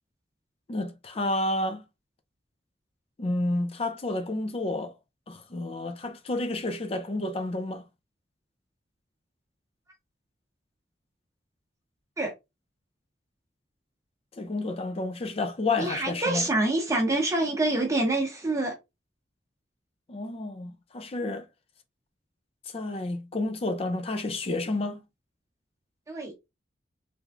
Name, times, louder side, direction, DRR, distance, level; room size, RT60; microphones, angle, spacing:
voice 1, 0.7-1.8 3.2-5.0 5.3-7.9 14.4-16.5 20.1-21.5 22.7-25.0, left 2 dB, 35° left, 0.4 m, -30 dB
voice 2, 15.8-18.7 26.1-26.3, right 2 dB, 20° right, 0.8 m, -26 dB
3.4 x 3.0 x 2.4 m
head